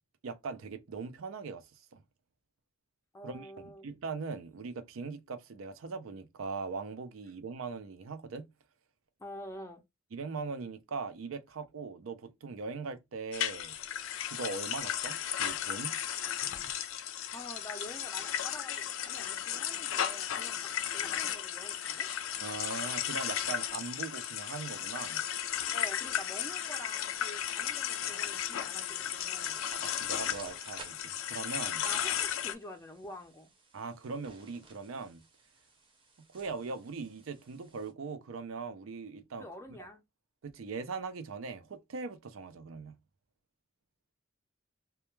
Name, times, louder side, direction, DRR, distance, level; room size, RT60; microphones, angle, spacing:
voice 1, 0.2-2.0 3.2-8.5 10.1-13.8 14.2-16.0 16.4-16.7 22.4-25.2 29.7-31.8 33.7-35.2 36.3-39.5 39.8-39.9 40.4-43.0, right 4 dB, 90° right, 0.5 m, -40 dB
voice 2, 3.1-3.9 9.2-9.8 17.3-22.1 25.7-29.6 31.8-33.5 39.4-40.0, left 1 dB, 15° left, 0.4 m, -47 dB
sound 1, 13.3-32.5, left 10 dB, 85° left, 0.4 m, -35 dB
sound 2, 29.5-37.9, right 3 dB, 25° right, 0.6 m, -56 dB
2.2 x 2.1 x 3.0 m
head